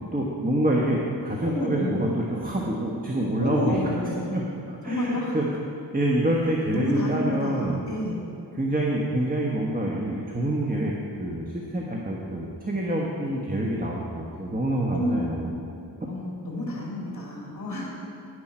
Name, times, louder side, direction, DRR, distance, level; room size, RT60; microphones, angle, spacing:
voice 1, 0.1-3.8 4.3-4.4 4.7-5.4 5.9-7.8 8.6-10.9 11.2-15.5, right 1 dB, 20° right, -2 dB, 1.4 m, -26 dB
voice 2, 1.5-2.0 3.4-4.2 4.8-5.4 6.7-8.4 13.2-13.4 14.9-15.2 16.1-17.9, left 1 dB, 45° left, -4 dB, 3.1 m, -29 dB
11.0 x 10.5 x 4.4 m, 2.6 s
cardioid pair, 60°, 42 cm